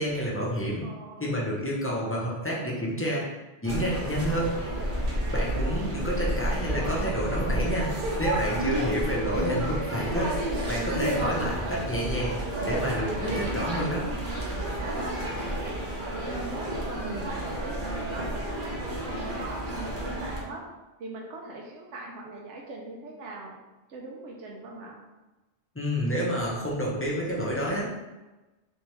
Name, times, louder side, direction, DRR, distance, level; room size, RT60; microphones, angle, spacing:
voice 1, 0.0-0.8 1.2-3.3 3.6-4.5 5.3-10.3 10.7-12.3 12.6-14.0 25.7-28.0, equal, 15° left, -5 dB, 0.6 m, -29 dB
voice 2, 0.8-1.3 5.3-5.5 8.9-9.0 14.8-15.3 16.0-20.6 21.0-23.6 23.9-25.0, right 2 dB, 85° right, -1 dB, 1.0 m, -41 dB
sound 1, 3.6-20.4, right 1 dB, 50° right, 0.9 m, -30 dB
3.3 x 3.3 x 3.1 m, 1.1 s
omnidirectional pair, 1.2 m